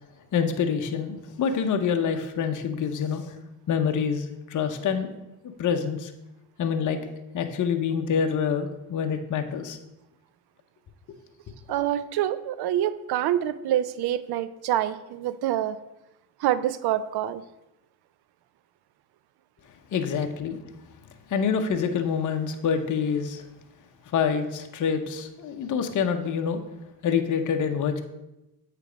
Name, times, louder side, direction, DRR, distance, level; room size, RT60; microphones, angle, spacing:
voice 1, 0.3-3.4 3.7-5.2 5.6-6.1 6.6-7.0 7.3-9.8 19.9-20.6 21.3-23.4 24.1-26.6 27.0-28.0, left 6 dB, 40° left, 6 dB, 0.8 m, -26 dB
voice 2, 11.7-15.8 16.4-17.4, right 12 dB, 50° right, 15 dB, 0.5 m, -26 dB
8.2 x 3.4 x 5.0 m, 0.93 s
supercardioid pair, 80°, 50 cm